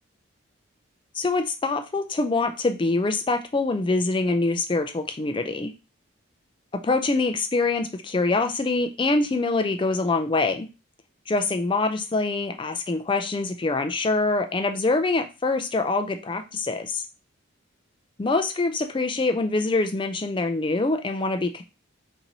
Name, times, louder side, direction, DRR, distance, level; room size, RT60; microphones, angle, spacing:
voice 1, 1.1-5.7 6.7-10.7 11.3-17.1 18.2-21.6, left 3 dB, 25° left, 7 dB, 0.3 m, -24 dB
2.9 x 2.6 x 4.0 m, 0.29 s
head